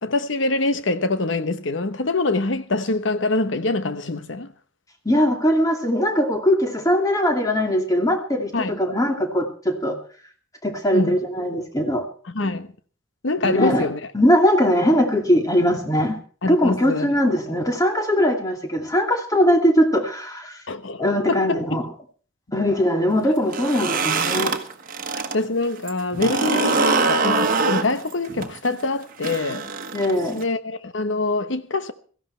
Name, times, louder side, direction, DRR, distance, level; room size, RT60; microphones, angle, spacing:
voice 1, 0.0-4.5 8.5-8.8 10.9-11.2 12.3-12.7 13.2-14.0 16.4-17.1 20.7-21.8 25.3-29.7 30.3-31.9, left 2 dB, 65° left, 1.1 m, -24 dB
voice 2, 5.0-10.0 10.6-12.0 13.4-13.9 14.1-16.2 16.5-20.6 21.0-21.9 22.5-24.5 29.9-30.4, equal, 20° left, 2.5 m, -20 dB
sound 1, 23.4-25.4 25.7-30.4, right 3 dB, 45° right, 1.4 m, -23 dB
17.0 x 14.5 x 4.5 m
head